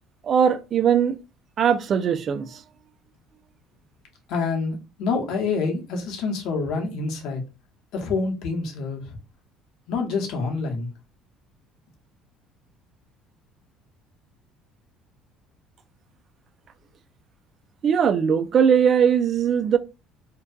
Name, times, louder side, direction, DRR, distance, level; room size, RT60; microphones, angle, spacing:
voice 1, 0.3-1.2 1.6-2.6 17.8-19.8, right 7 dB, 45° right, 0.4 m, -20 dB
voice 2, 4.3-7.4 7.9-9.2 9.9-10.9, left 4 dB, 70° left, 0.8 m, -27 dB
2.6 x 2.2 x 2.3 m
supercardioid pair, 90°, 0 cm